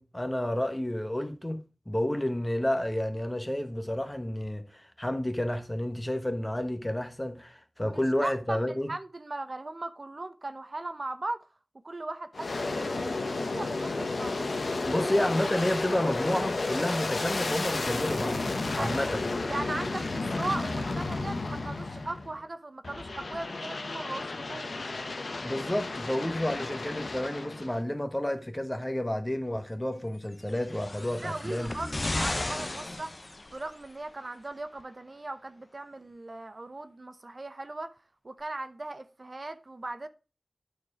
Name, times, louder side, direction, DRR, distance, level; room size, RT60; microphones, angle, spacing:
voice 1, 0.0-8.9 14.9-18.4 18.8-19.2 25.4-31.7, left 1 dB, 20° left, 1.2 m, -30 dB
voice 2, 7.8-11.5 11.8-15.1 18.7-19.0 19.5-24.7 31.2-33.1 33.5-37.9 38.2-40.1, right 2 dB, 55° right, 0.7 m, -38 dB
Aircraft, 12.3-22.4 22.8-27.8, left 3 dB, 90° left, 0.9 m, -32 dB
sound 1, 30.5-33.9 34.8-34.9, left 2 dB, 45° left, 0.7 m, -34 dB
9.4 x 4.5 x 4.8 m
wide cardioid pair, 55°, 0 cm